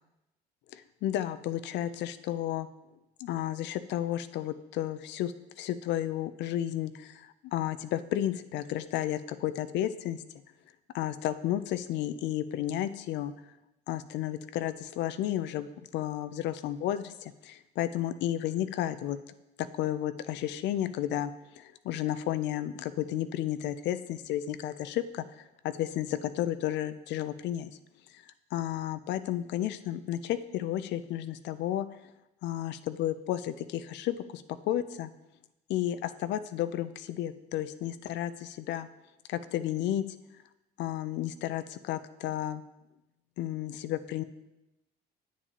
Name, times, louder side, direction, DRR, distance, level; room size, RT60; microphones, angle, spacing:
voice 1, 0.7-2.7 3.2-10.2 10.9-13.3 13.9-19.2 19.6-27.7 28.5-31.9 32.4-35.1 35.7-38.9 39.3-40.0 40.8-42.6 43.4-44.2, left 12 dB, 70° left, 12 dB, 0.4 m, -32 dB
8.4 x 7.2 x 2.9 m, 0.94 s
supercardioid pair, 90°, 19 cm